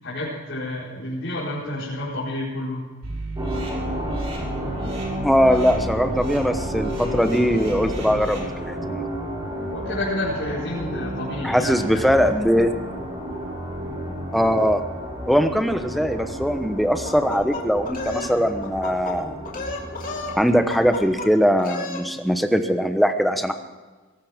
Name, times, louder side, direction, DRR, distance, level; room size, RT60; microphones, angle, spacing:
voice 1, 0.0-2.8 9.7-12.3, left 1 dB, 55° left, -8 dB, 4.9 m, -30 dB
sound 1, 3.0-8.4, right 1 dB, 65° right, 5.6 m, -32 dB
sound 2, 3.4-21.1, equal, 20° right, 4.7 m, -32 dB
voice 2, 5.2-9.1 11.4-12.7 14.3-14.8 15.3-19.4 20.3-23.5, equal, ahead, 7 dB, 1.0 m, -21 dB
sound 3, 17.1-18.3 18.6-19.2 19.5-20.4 20.7-21.3 21.6-22.0, left 3 dB, 40° left, 3.0 m, -32 dB
22.0 x 18.0 x 3.7 m, 1.3 s
head